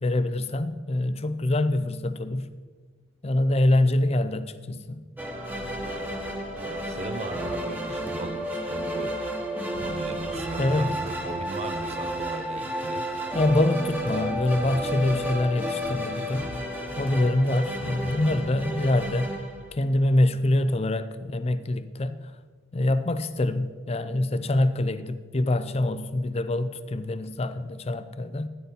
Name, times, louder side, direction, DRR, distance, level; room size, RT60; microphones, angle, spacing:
voice 1, 0.0-2.5 3.2-5.0 10.6-10.9 13.3-16.5 17.0-19.3 19.7-22.1 22.7-28.5, left 1 dB, 30° left, 12 dB, 0.5 m, -25 dB
sound 1, 5.2-20.1, equal, 10° right, 1.2 m, -32 dB
sound 2, 5.4-8.1 9.5-11.2 12.2-12.3 12.6-12.7 14.0-17.1 17.7-20.3, left 2 dB, 80° left, 0.7 m, -47 dB
voice 2, 6.5-9.2 9.8-13.1, right 2 dB, 30° right, 10 dB, 0.7 m, -37 dB
13.5 x 9.8 x 4.1 m, 1.5 s
head